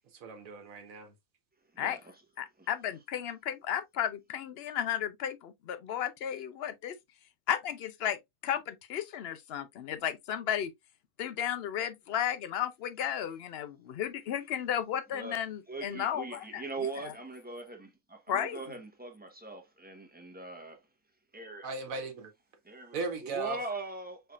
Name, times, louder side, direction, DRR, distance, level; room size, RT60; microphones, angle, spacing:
voice 1, 0.1-1.1 21.6-22.3 22.9-23.6, right 4 dB, 80° right, 1.3 m, -37 dB
voice 2, 1.7-2.2 2.6-2.7 15.1-20.9 21.3-21.7 22.6-24.3, right 3 dB, 10° right, 0.8 m, -41 dB
voice 3, 2.4-7.0 7.5-8.2 8.4-10.7 11.2-16.6 18.3-18.6, left 9 dB, 60° left, 0.7 m, -34 dB
5.6 x 3.2 x 2.3 m
omnidirectional pair, 1.4 m